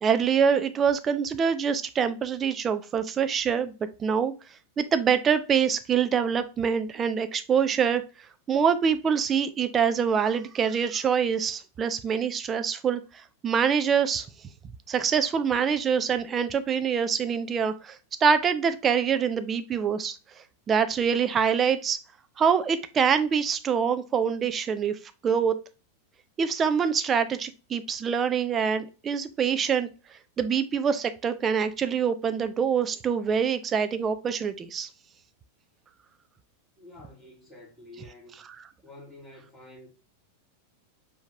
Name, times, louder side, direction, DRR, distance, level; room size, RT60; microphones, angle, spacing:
voice 1, 0.0-3.7 4.0-4.3 4.8-8.0 8.5-13.0 13.4-14.3 14.9-20.2 20.7-22.0 22.4-24.9 25.2-25.5 26.4-29.9 30.4-34.9, right 7 dB, 25° right, 0.4 m, -25 dB
voice 2, 36.8-38.4 38.8-39.9, left 2 dB, 5° left, 2.5 m, -49 dB
4.6 x 2.8 x 3.3 m
figure-of-eight pair, 90°, 0 cm